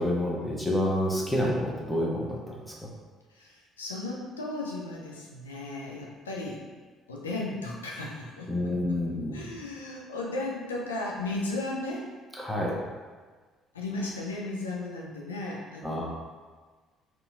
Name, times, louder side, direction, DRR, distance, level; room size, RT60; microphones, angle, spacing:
voice 1, 0.0-2.7 8.5-9.4 12.3-12.8 15.8-16.0, left 1 dB, 5° left, -3 dB, 0.9 m, -28 dB
voice 2, 3.3-6.6 7.1-9.0 9.3-12.1 13.7-16.0, left 2 dB, 80° left, -2 dB, 0.5 m, -35 dB
4.1 x 2.9 x 2.3 m, 1.4 s
figure-of-eight pair, 50°, 0 cm